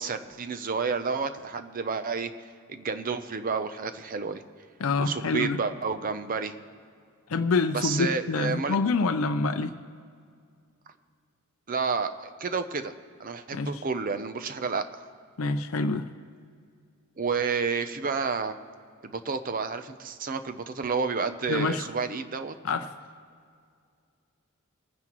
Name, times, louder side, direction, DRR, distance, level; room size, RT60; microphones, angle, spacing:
voice 1, 0.0-4.4 5.0-6.6 7.7-8.8 11.7-12.9 13.2-15.1 17.2-18.5 19.0-22.5, right 5 dB, 40° right, 9 dB, 0.6 m, -30 dB
voice 2, 4.8-5.6 7.3-9.8 13.5-13.7 15.4-16.1 21.5-21.8 22.6-22.9, left 3 dB, 65° left, 7 dB, 0.5 m, -26 dB
23.0 x 9.6 x 3.0 m, 2.2 s
head